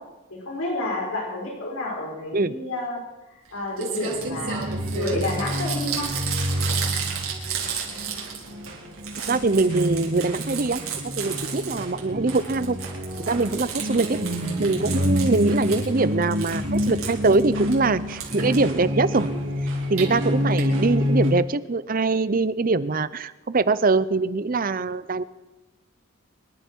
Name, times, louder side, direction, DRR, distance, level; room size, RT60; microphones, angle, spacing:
voice 1, 0.3-3.0 3.5-4.6 4.9-6.1, left 2 dB, 85° left, -3 dB, 4.8 m, -29 dB
Crumpling crinkling, 3.4-3.5 3.8-8.7 8.9-12.0 12.3-15.9 16.2-17.7 18.2-18.6 19.7-20.0 20.6-20.7 20.9-21.0 21.2-21.3, right 6 dB, 85° right, 4.2 m, -33 dB
sound 1, 4.1-21.3, equal, 65° right, 3.6 m, -28 dB
voice 2, 9.3-10.8 11.2-12.8 13.2-14.2 14.6-19.3 19.9-25.2, right 3 dB, 40° right, 15 dB, 0.6 m, -23 dB
26.5 x 11.5 x 4.6 m, 1.0 s
head